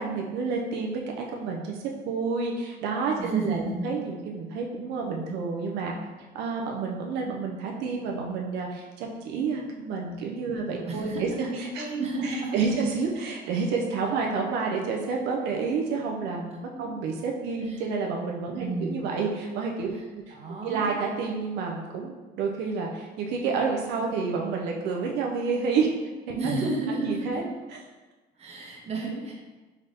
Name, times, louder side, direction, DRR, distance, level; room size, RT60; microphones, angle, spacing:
voice 1, 0.0-1.8 2.1-6.0 6.3-11.9 12.2-19.9 20.3-20.4 20.6-25.9 26.3-26.6 26.9-27.4, right 4 dB, 90° right, 0 dB, 0.5 m, -29 dB
voice 2, 3.2-3.9 10.8-11.2 11.5-12.7 17.6-17.8 18.5-19.1 19.9-20.0 20.3-20.9 26.3-27.4 28.4-29.3, right 3 dB, 40° right, -1 dB, 0.9 m, -31 dB
3.8 x 3.3 x 2.7 m, 1.2 s
cardioid pair, 110°, 17 cm